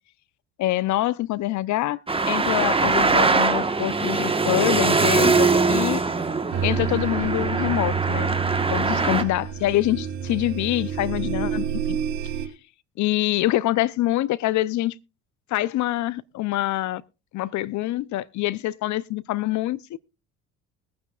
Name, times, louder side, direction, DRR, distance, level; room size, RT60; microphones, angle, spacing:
voice 1, 0.6-2.0 2.3-6.0 6.6-8.4 8.7-12.0 13.0-14.9 15.5-17.0 17.3-20.0, left 16 dB, 55° left, 0.7 m, -25 dB
Traffic noise roadway noise, 2.1-9.2, right 4 dB, 15° right, 1.3 m, -22 dB
sound 1, 6.5-12.5, right 7 dB, 85° right, 2.4 m, -28 dB
21.0 x 9.4 x 2.4 m
supercardioid pair, 80°, 34 cm